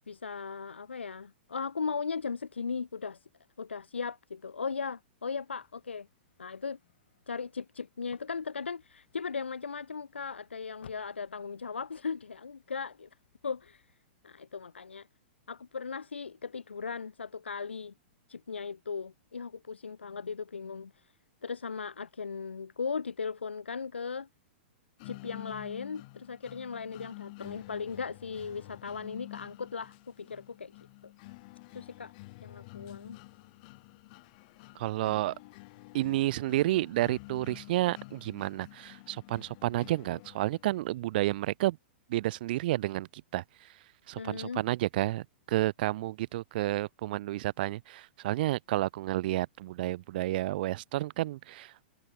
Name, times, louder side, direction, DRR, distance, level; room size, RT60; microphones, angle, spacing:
voice 1, 0.1-3.2 3.6-6.1 6.4-6.8 7.3-13.1 13.4-13.9 14.2-15.1 15.5-17.9 18.3-21.1 21.4-24.3 25.0-30.7 31.0-31.1 31.7-32.1 32.4-33.2 35.0-35.1 44.2-44.6, left 5 dB, 90° left, 0.5 m, -37 dB
sound 1, 5.4-14.0, left 9 dB, 70° left, 6.5 m, -63 dB
sound 2, 25.0-41.0, left 25 dB, 45° left, 1.3 m, -49 dB
voice 2, 34.8-35.3 35.9-41.8 42.1-43.1 43.3-43.4 44.1-51.7, right 16 dB, 55° right, 0.7 m, -30 dB
hypercardioid pair, 115°, 6 cm